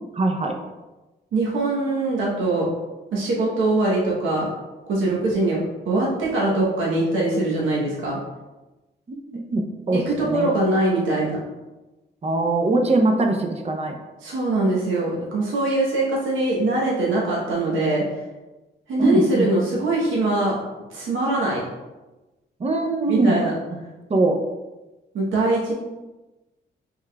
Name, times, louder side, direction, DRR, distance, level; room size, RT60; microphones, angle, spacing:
voice 1, 0.1-0.6 9.1-10.5 12.2-14.0 19.0-19.5 22.6-23.4 24.1-24.4, right 2 dB, 35° right, 3 dB, 0.6 m, -22 dB
voice 2, 1.3-2.7 3.1-4.5 4.9-8.2 9.9-11.4 14.2-18.0 18.9-20.6 20.9-21.6 23.1-23.5 25.1-25.7, right 2 dB, 90° right, -4 dB, 1.0 m, -22 dB
5.4 x 3.5 x 2.2 m, 1.1 s
cardioid pair, 95°, 20 cm